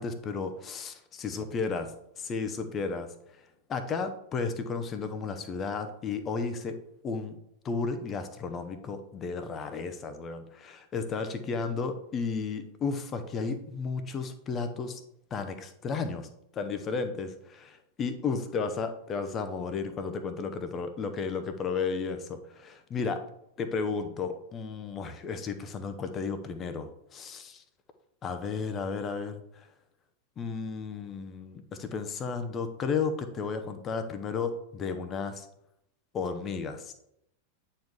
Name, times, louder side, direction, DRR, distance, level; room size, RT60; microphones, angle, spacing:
voice 1, 0.0-1.9 2.2-3.1 3.7-6.8 7.0-7.4 7.6-15.0 15.3-16.3 16.5-23.2 23.6-27.6 28.2-29.7 30.4-35.5 36.1-36.9, left 5 dB, 25° left, 8 dB, 0.9 m, -33 dB
8.9 x 4.5 x 3.6 m, 0.77 s
figure-of-eight pair, 90°, 0 cm